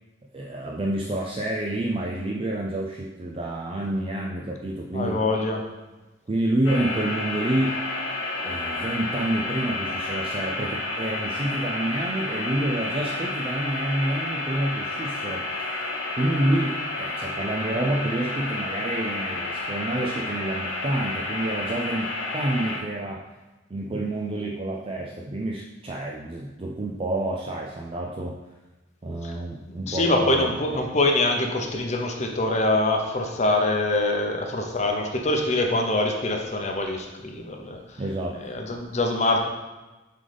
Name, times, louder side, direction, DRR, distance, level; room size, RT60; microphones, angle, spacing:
voice 1, 0.3-5.4 6.3-7.8 8.4-23.3 23.7-28.4 29.0-30.5 30.7-30.8 38.0-38.4, right 1 dB, 30° right, -1 dB, 0.4 m, -28 dB
voice 2, 4.9-5.6 29.2-29.3 29.9-37.8 38.4-39.4, left 2 dB, 35° left, 2 dB, 0.7 m, -24 dB
sound 1, 6.7-22.8, left 2 dB, 85° left, 0.8 m, -30 dB
7.5 x 3.8 x 3.4 m, 1.1 s
head